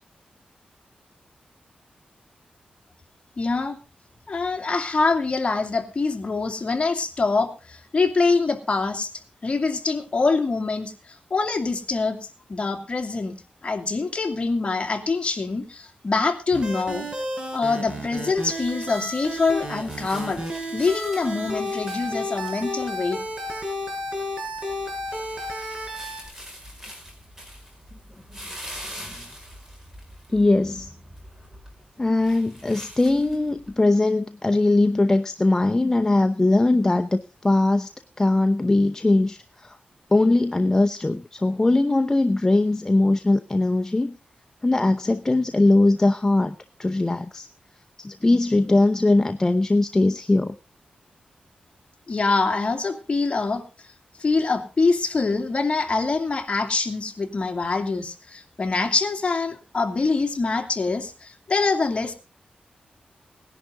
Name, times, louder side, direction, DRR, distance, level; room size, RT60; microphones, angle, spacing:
voice 1, 3.4-3.8 4.3-9.1 9.4-12.2 12.5-13.4 13.6-17.1 17.5-20.4 20.7-23.2 52.1-53.6 54.2-62.1, left 3 dB, 40° left, 4 dB, 2.5 m, -24 dB
sound 1, 16.5-26.3, equal, 30° right, 6.0 m, -32 dB
sound 2, 18.6-33.7, equal, 15° right, 5.2 m, -44 dB
voice 2, 30.3-30.9 32.0-37.9 38.2-39.8 40.1-44.2 44.6-47.5 48.0-50.6, left 2 dB, 20° left, 7 dB, 0.7 m, -20 dB
18.5 x 11.0 x 3.8 m, 0.32 s
wide cardioid pair, 115°, 3 cm